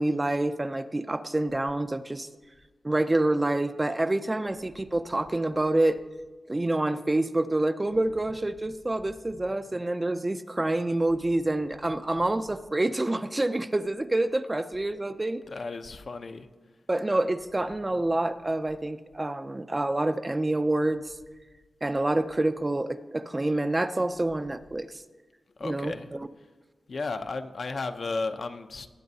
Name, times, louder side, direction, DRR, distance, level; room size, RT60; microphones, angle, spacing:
voice 1, 0.0-2.3 2.8-6.0 6.5-15.4 16.9-21.2 21.8-25.0 25.6-26.3, right 2 dB, 20° right, 11 dB, 0.4 m, -27 dB
voice 2, 15.5-16.5 25.6-26.1 26.9-28.9, left 3 dB, 55° left, 7 dB, 0.6 m, -34 dB
19.5 x 8.7 x 2.7 m, 1.3 s
wide cardioid pair, 105°, 0 cm